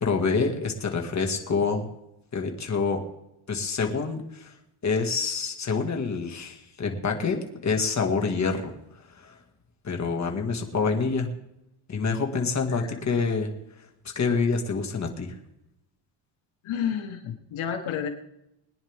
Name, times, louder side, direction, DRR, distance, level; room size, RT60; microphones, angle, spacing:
voice 1, 0.0-1.9 2.3-3.0 3.5-4.5 4.8-8.7 9.2-9.3 9.8-11.3 11.9-13.5 14.2-15.3, left 4 dB, 35° left, 2 dB, 2.2 m, -27 dB
voice 2, 12.7-13.0 16.6-18.1, left 8 dB, 75° left, 5 dB, 1.6 m, -31 dB
22.0 x 10.0 x 3.6 m, 0.84 s
cardioid pair, 120°, 49 cm